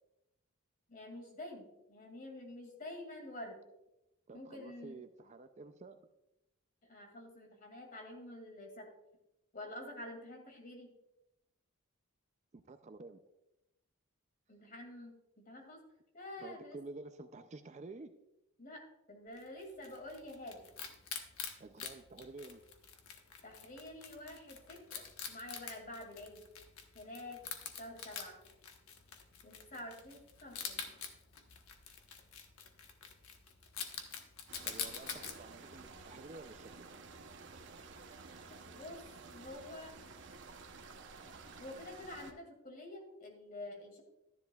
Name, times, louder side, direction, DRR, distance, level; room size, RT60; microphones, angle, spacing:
voice 1, 0.9-3.6 4.3-5.0 6.8-8.9 9.5-10.9 14.5-15.8 16.1-16.8 18.6-20.7 23.4-26.4 26.9-27.4 27.8-28.4 29.4-30.9 38.5-39.0 39.3-39.9 41.6-44.0, left 1 dB, 40° left, 2 dB, 2.3 m, -48 dB
voice 2, 4.3-6.0 12.5-13.2 16.4-18.1 21.6-22.6 34.7-36.7, right 3 dB, 30° right, 9 dB, 0.4 m, -50 dB
Wild animals, 19.4-35.4, left 7 dB, 80° left, 1.1 m, -47 dB
sound 1, 34.5-42.3, right 4 dB, 55° right, 0.9 m, -52 dB
12.5 x 10.5 x 2.3 m, 0.91 s
head